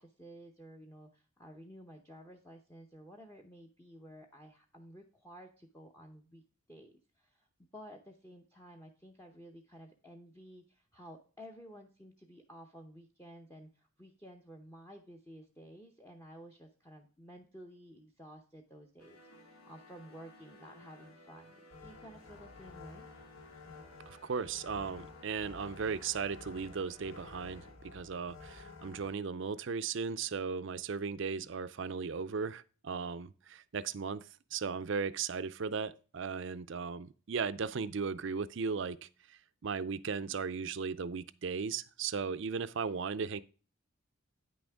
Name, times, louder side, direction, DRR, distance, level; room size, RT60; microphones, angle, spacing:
voice 1, 0.0-6.4 6.7-23.1, equal, 10° left, 0.7 m, -53 dB
sound 1, 19.0-27.7, left 1 dB, 90° left, 2.1 m, -58 dB
sound 2, 21.7-29.1, left 3 dB, 60° left, 1.2 m, -52 dB
voice 2, 24.1-27.6 27.9-34.2 34.5-43.4, right 5 dB, 60° right, 0.5 m, -36 dB
9.2 x 6.3 x 3.4 m
head